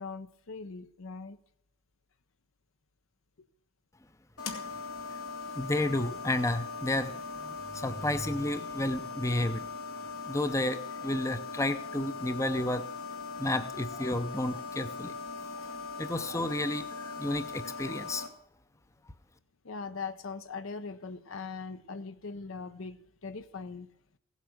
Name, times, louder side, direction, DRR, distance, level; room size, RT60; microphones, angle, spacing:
voice 1, 0.0-1.4 15.9-16.0 19.6-23.9, left 4 dB, 70° left, 12 dB, 0.7 m, -40 dB
sound 1, 4.4-18.3, left 4 dB, 85° left, 2.1 m, -40 dB
voice 2, 5.6-7.1 7.4-9.7 10.3-12.8 13.4-15.1 16.0-18.3, left 1 dB, 15° left, 11 dB, 0.6 m, -31 dB
16.5 x 8.2 x 6.1 m, 0.74 s
head